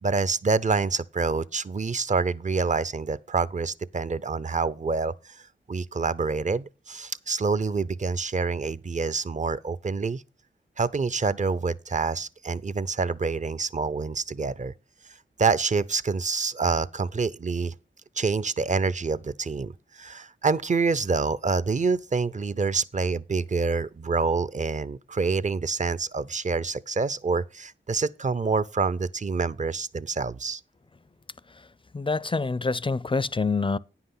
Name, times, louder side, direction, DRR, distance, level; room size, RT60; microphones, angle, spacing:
voice 1, 0.0-5.4 5.7-10.2 10.8-14.7 15.4-17.7 18.2-30.6, right 4 dB, 35° right, 0.5 m, -27 dB
voice 2, 31.9-33.8, left 4 dB, 25° left, 0.4 m, -26 dB
9.5 x 5.8 x 5.6 m
cardioid pair, 40°, 20 cm